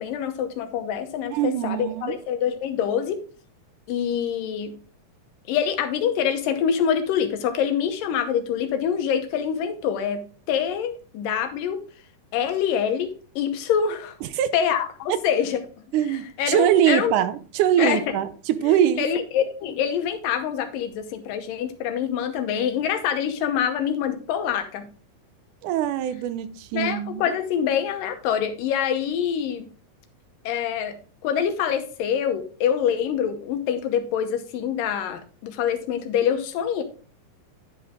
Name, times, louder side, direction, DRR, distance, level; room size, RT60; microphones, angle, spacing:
voice 1, 0.0-3.2 3.9-4.7 5.5-11.8 12.3-14.2 14.5-15.6 16.1-17.2 17.8-18.0 18.6-24.9 26.7-29.7 30.5-31.0 31.2-36.8, left 8 dB, 90° left, 2.6 m, -25 dB
voice 2, 1.3-2.2 14.2-14.5 15.9-19.1 25.6-27.2, right 11 dB, 80° right, 2.0 m, -23 dB
10.5 x 5.1 x 3.6 m
omnidirectional pair, 3.8 m